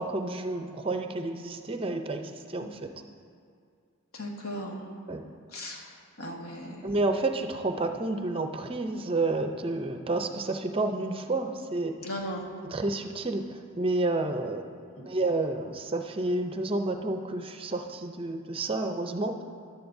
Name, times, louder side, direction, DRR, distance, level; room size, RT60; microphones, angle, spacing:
voice 1, 0.0-2.9 5.1-5.2 6.8-12.0 12.6-14.7 15.0-19.3, right 2 dB, 25° right, 5 dB, 0.5 m, -30 dB
voice 2, 4.1-4.9 5.5-6.9 12.0-12.5 15.0-15.1, equal, 80° left, 0 dB, 1.5 m, -37 dB
15.0 x 10.5 x 2.6 m, 2.3 s
head